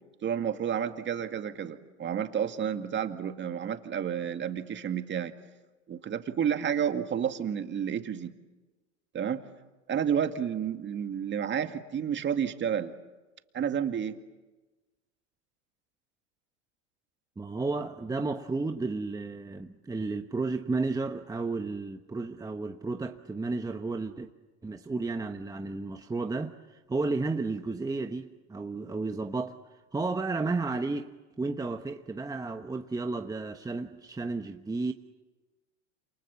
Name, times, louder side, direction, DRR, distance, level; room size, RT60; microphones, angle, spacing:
voice 1, 0.2-5.3 5.9-8.3 9.1-9.4 9.9-12.9 13.5-14.2, right 8 dB, 30° right, 2.1 m, -30 dB
voice 2, 17.4-24.3 24.6-29.6 29.9-31.1 31.4-34.9, right 3 dB, 10° right, 1.1 m, -32 dB
28.5 x 28.0 x 7.1 m
hypercardioid pair, 95°, 35 cm